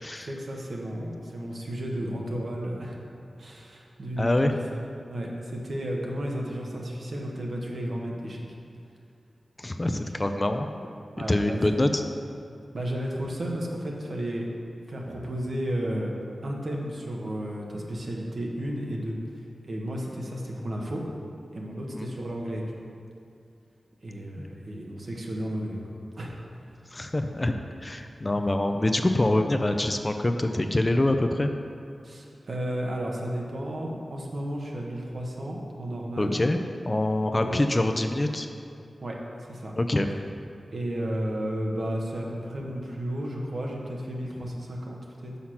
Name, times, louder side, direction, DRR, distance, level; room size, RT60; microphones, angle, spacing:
voice 1, 0.2-3.0 3.4-4.8 5.1-8.4 11.2-11.6 12.7-14.5 14.9-16.1 16.4-21.0 21.5-22.6 24.0-25.8 26.1-26.3 32.0-36.4 37.3-37.7 39.0-39.7 40.7-45.3, equal, 65° right, -2 dB, 1.3 m, -33 dB
voice 2, 4.2-4.5 9.6-10.7 11.3-12.0 21.9-22.1 26.9-27.6 27.8-31.5 36.2-36.6 36.8-38.5 39.8-40.1, left 1 dB, 30° left, 6 dB, 0.5 m, -25 dB
6.3 x 5.7 x 5.8 m, 2.5 s
wide cardioid pair, 80°, 0 cm